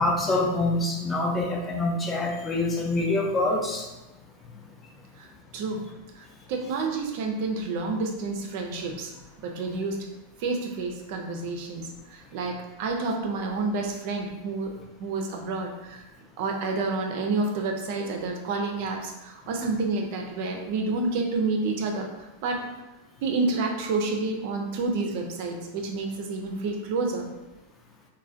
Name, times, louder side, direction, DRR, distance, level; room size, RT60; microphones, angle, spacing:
voice 1, 0.0-3.9, left 2 dB, 20° left, 0 dB, 0.5 m, -25 dB
voice 2, 5.5-5.8 6.1-9.1 9.4-10.0 10.4-14.7 15.0-16.0 16.4-22.7 23.2-27.3, right 3 dB, 50° right, 2 dB, 0.4 m, -29 dB
3.2 x 2.1 x 2.5 m, 1.0 s
figure-of-eight pair, 90°, 0 cm